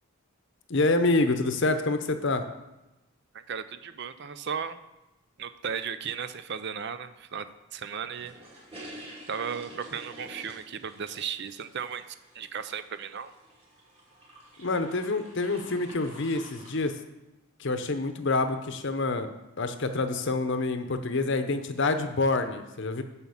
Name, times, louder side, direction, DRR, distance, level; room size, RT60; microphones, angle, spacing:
voice 1, 0.7-2.5 14.6-17.0 17.6-19.3 19.6-23.0, left 3 dB, 55° left, 8 dB, 0.8 m, -27 dB
voice 2, 3.3-4.8 5.4-7.5 7.7-8.3 9.3-12.0 12.3-13.3, right 7 dB, 50° right, 11 dB, 0.5 m, -35 dB
sound 1, 8.1-16.8, right 1 dB, 25° right, 2.6 m, -48 dB
7.7 x 5.8 x 7.2 m, 0.98 s
head